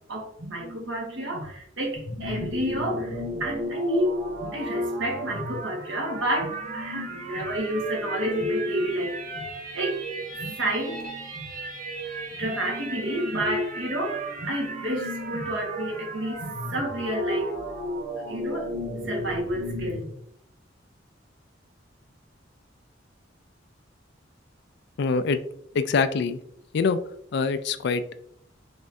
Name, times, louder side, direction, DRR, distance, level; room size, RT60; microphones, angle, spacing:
voice 1, 0.1-9.4 9.7-10.0 10.4-11.4 12.3-17.5 18.2-18.7 19.0-20.0, right 1 dB, 70° right, -1 dB, 1.6 m, -30 dB
sound 1, 1.9-20.1, equal, 45° right, 1.4 m, -34 dB
voice 2, 25.0-25.4 25.7-26.4 26.7-27.0 27.3-28.2, left 5 dB, 60° left, 11 dB, 0.4 m, -24 dB
5.2 x 3.5 x 2.7 m, 0.67 s
head